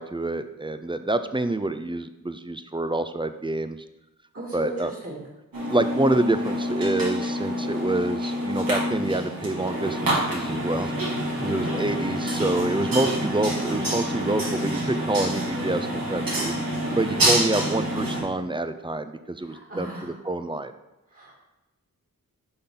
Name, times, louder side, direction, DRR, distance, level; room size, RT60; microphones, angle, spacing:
voice 1, 0.0-3.8 4.5-4.9 5.6-16.5 17.0-20.7, right 2 dB, 15° right, 10 dB, 0.4 m, -27 dB
voice 2, 4.3-5.2 11.3-11.9 12.8-13.1 19.4-20.1 21.1-21.3, right 2 dB, 45° right, -3 dB, 2.2 m, -36 dB
sound 1, 5.5-18.2, equal, 80° right, 2.7 m, -27 dB
7.9 x 5.7 x 3.8 m, 1.0 s
wide cardioid pair, 90°, 34 cm